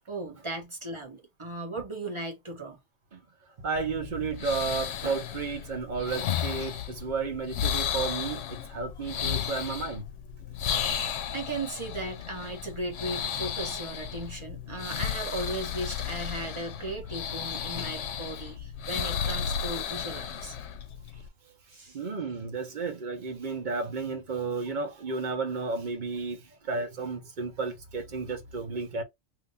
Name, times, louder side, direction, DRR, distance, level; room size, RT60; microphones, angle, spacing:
voice 1, 0.1-2.8 9.2-9.3 11.3-20.5 21.7-22.0, right 2 dB, 25° right, 1.0 m, -36 dB
voice 2, 3.6-10.1 21.9-29.0, right 4 dB, 45° right, 0.9 m, -32 dB
sound 1, 3.7-21.3, left 8 dB, 70° left, 0.9 m, -34 dB
3.5 x 2.7 x 2.6 m
omnidirectional pair, 1.2 m